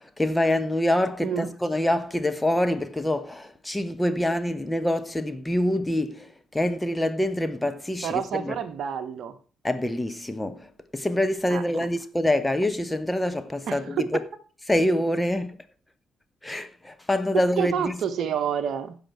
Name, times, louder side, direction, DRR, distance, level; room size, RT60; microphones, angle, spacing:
voice 1, 0.0-8.6 9.6-14.2 14.7-15.6 16.4-18.0, left 1 dB, 15° left, 1.1 m, -26 dB
voice 2, 1.2-1.5 7.4-7.5 8.0-9.4 11.5-11.9 13.7-14.1 17.6-19.0, right 8 dB, 55° right, 0.9 m, -29 dB
15.5 x 5.9 x 4.5 m
figure-of-eight pair, 40°, 0 cm